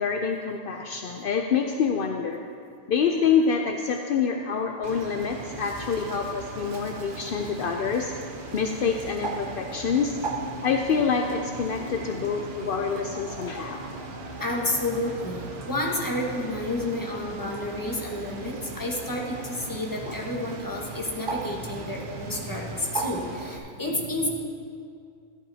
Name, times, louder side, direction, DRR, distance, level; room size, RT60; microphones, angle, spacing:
voice 1, 0.0-2.4 2.9-8.1 8.5-10.2 10.6-13.8 20.1-20.2, left 6 dB, 65° left, 3 dB, 0.5 m, -26 dB
Bird, 4.8-23.6, right 3 dB, 50° right, 0.7 m, -38 dB
sound 1, 10.1-21.0, left 2 dB, 80° right, 2.0 m, -43 dB
voice 2, 11.9-12.2 14.4-24.3, left 1 dB, 15° left, -2 dB, 1.2 m, -30 dB
13.5 x 11.5 x 2.8 m, 2.4 s
omnidirectional pair, 1.5 m